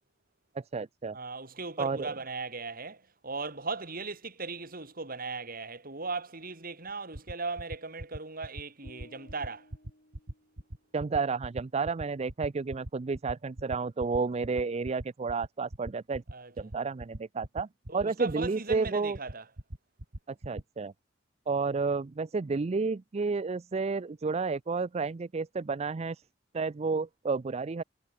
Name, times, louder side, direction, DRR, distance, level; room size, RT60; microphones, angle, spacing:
voice 1, 0.5-1.2 1.8-2.1 10.9-16.2 16.6-17.7 17.9-19.2 20.3-20.9 21.5-26.2 26.5-27.8, right 4 dB, 35° right, 0.4 m, -31 dB
voice 2, 1.1-9.7 16.3-16.5 17.9-19.4, right 3 dB, 50° right, 4.9 m, -38 dB
sound 1, 6.9-20.6, right 1 dB, 85° right, 2.2 m, -40 dB
sound 2, 8.8-11.0, left 1 dB, 50° left, 7.9 m, -58 dB
head